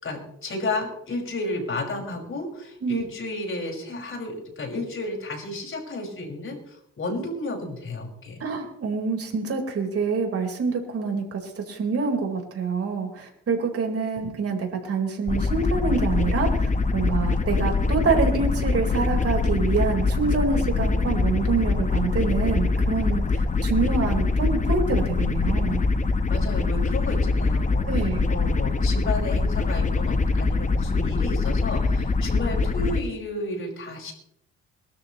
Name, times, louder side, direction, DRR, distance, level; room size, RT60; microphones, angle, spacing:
voice 1, 0.0-8.4 14.2-14.3 26.3-34.1, left 2 dB, 45° left, 1 dB, 5.6 m, -32 dB
voice 2, 8.4-25.8 27.9-28.3, right 4 dB, 50° right, 2 dB, 4.4 m, -26 dB
sound 1, 15.3-33.0, left 3 dB, 25° left, 1.1 m, -23 dB
22.5 x 13.5 x 3.1 m, 0.75 s
cardioid pair, 90°, 30 cm